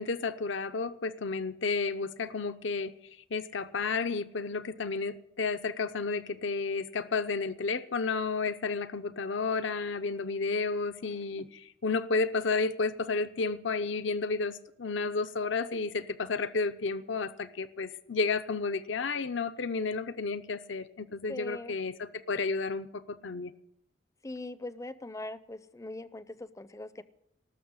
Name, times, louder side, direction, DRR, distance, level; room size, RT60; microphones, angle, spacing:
voice 1, 0.0-2.9 3.3-23.5, left 4 dB, 65° left, 11 dB, 0.7 m, -32 dB
voice 2, 21.3-21.8 24.2-27.0, left 2 dB, 15° left, 14 dB, 0.6 m, -41 dB
19.0 x 6.8 x 9.5 m, 0.78 s
head